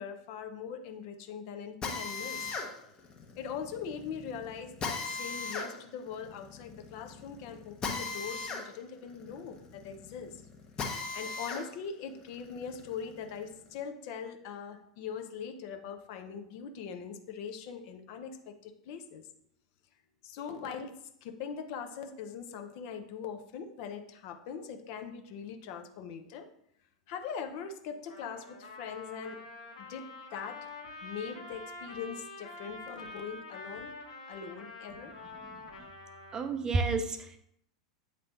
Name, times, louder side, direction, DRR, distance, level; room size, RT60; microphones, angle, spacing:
voice 1, 0.0-2.5 3.4-10.4 11.1-19.2 20.2-20.9 21.2-26.5 27.1-29.4 29.8-30.7 31.0-33.9 34.3-35.1, left 6 dB, 45° left, 6 dB, 0.7 m, -41 dB
Drill, 1.8-11.7 12.1-13.7, left 4 dB, 25° left, 1.0 m, -39 dB
Trumpet, 28.1-36.5, left 3 dB, 70° left, 1.3 m, -46 dB
voice 2, 36.3-37.4, right 3 dB, 20° right, 8 dB, 0.5 m, -31 dB
8.2 x 3.3 x 3.9 m, 0.73 s
figure-of-eight pair, 85°, 3 cm